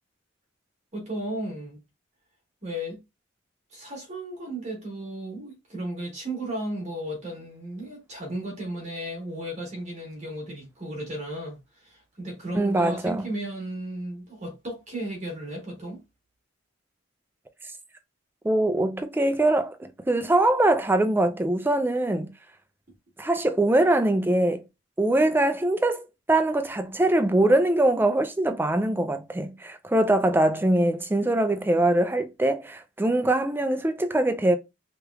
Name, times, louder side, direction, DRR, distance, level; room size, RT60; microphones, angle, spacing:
voice 1, 0.9-1.8 2.6-3.0 3.7-16.0, right 1 dB, 35° right, 1.3 m, -34 dB
voice 2, 12.5-13.3 18.4-22.3 23.2-24.6 25.0-34.5, right 1 dB, 10° right, 0.3 m, -23 dB
3.3 x 3.0 x 2.3 m
head